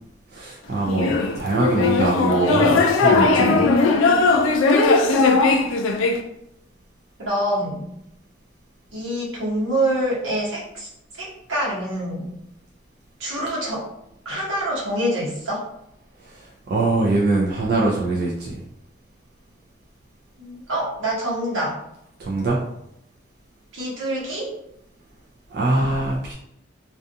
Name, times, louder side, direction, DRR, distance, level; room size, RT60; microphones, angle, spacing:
voice 1, 0.3-3.7 16.3-16.4 16.7-18.6 22.2-22.6 25.5-26.3, right 2 dB, 50° right, -3 dB, 0.3 m, -23 dB
sound 1, 0.9-6.2, left 3 dB, 90° left, 0.4 m, -18 dB
voice 2, 7.2-7.9 8.9-10.9 11.2-12.3 13.2-13.9 14.2-15.7 20.4-21.8 23.7-24.5, right 1 dB, 80° right, -5 dB, 1.1 m, -26 dB
2.4 x 2.3 x 2.6 m, 0.78 s
head